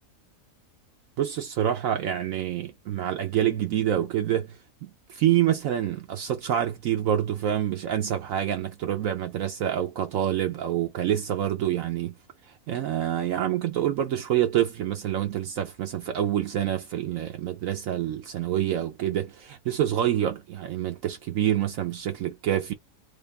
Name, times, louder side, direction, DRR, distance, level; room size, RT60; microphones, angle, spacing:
voice 1, 1.2-12.1 12.7-22.7, right 11 dB, 70° right, 1.0 m, -27 dB
3.4 x 2.5 x 3.4 m
omnidirectional pair, 1.5 m